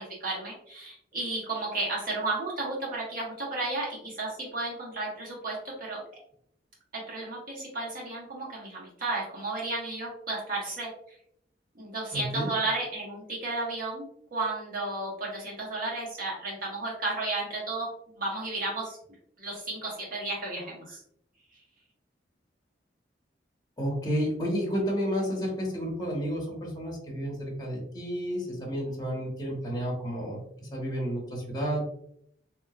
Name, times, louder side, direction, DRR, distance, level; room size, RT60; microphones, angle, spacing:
voice 1, 0.0-6.0 6.9-10.9 11.7-14.0 14.3-19.0 19.4-21.0, right 2 dB, 50° right, -4 dB, 1.4 m, -33 dB
voice 2, 12.1-12.5 23.8-31.8, equal, 20° left, -3 dB, 0.9 m, -31 dB
3.4 x 2.9 x 2.3 m, 0.69 s
head